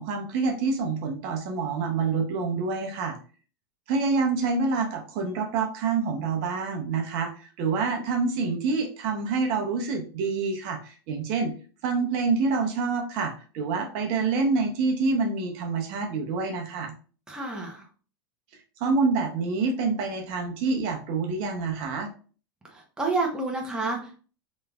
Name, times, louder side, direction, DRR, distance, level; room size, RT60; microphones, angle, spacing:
voice 1, 0.0-3.2 3.9-7.3 7.6-11.5 11.8-16.9 18.8-22.1, right 4 dB, 50° right, 3 dB, 0.8 m, -27 dB
voice 2, 17.3-17.8 22.7-24.2, right 3 dB, 5° right, -1 dB, 0.9 m, -29 dB
3.3 x 3.1 x 2.4 m, 0.38 s
supercardioid pair, 125°, 12 cm